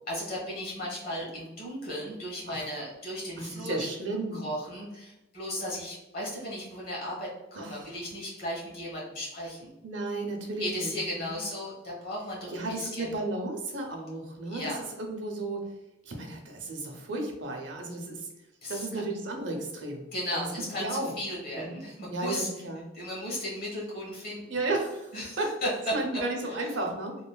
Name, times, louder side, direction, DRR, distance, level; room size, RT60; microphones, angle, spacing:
voice 1, 0.1-3.7 4.3-9.7 10.6-13.1 14.5-14.8 18.6-19.0 20.1-22.5 22.9-24.6 25.1-25.7 26.5-26.6, left 1 dB, 50° left, -4 dB, 1.3 m, -36 dB
voice 2, 3.4-4.5 7.5-7.9 9.8-11.4 12.5-15.7 16.1-18.3 18.7-20.5 20.8-21.1 21.5-21.8 22.1-22.9 24.5-25.5 25.9-27.2, right 2 dB, 70° right, 2 dB, 0.6 m, -34 dB
3.0 x 2.3 x 2.2 m, 0.94 s
head